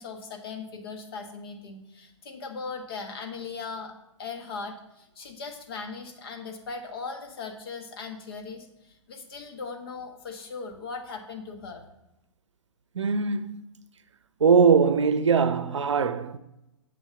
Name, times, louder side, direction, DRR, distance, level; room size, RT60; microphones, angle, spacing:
voice 1, 0.0-3.9 4.2-11.9, left 4 dB, 50° left, 1.4 m, -39 dB
voice 2, 13.0-13.6 14.4-16.4, right 5 dB, 70° right, 0.6 m, -21 dB
7.6 x 5.6 x 5.9 m
figure-of-eight pair, 120°, 16 cm